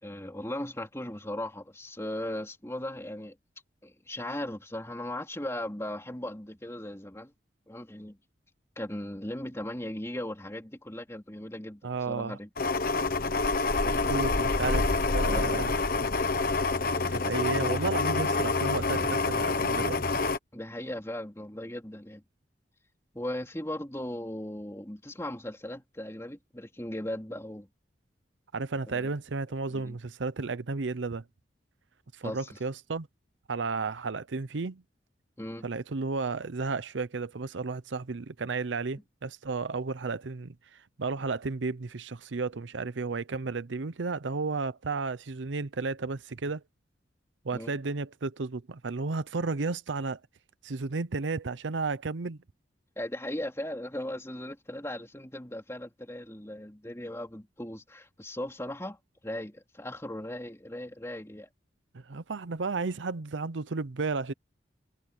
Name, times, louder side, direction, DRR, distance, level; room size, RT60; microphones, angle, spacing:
voice 1, 0.0-3.4 3.8-7.3 7.7-8.2 8.8-12.5 15.2-15.6 20.5-22.2 23.1-27.7 28.9-29.1 29.7-30.0 32.2-32.6 35.4-35.7 47.5-47.7 53.0-59.0 59.2-61.5, left 1 dB, 15° left, 3.0 m, -38 dB
voice 2, 11.8-12.4 13.8-15.7 17.1-20.0 28.5-31.2 32.1-33.1 33.5-34.8 35.6-46.6 47.4-50.2 50.6-52.4 61.9-64.3, right 4 dB, 85° right, 0.7 m, -33 dB
sound 1, 12.6-20.4, left 3 dB, 50° left, 1.2 m, -27 dB
head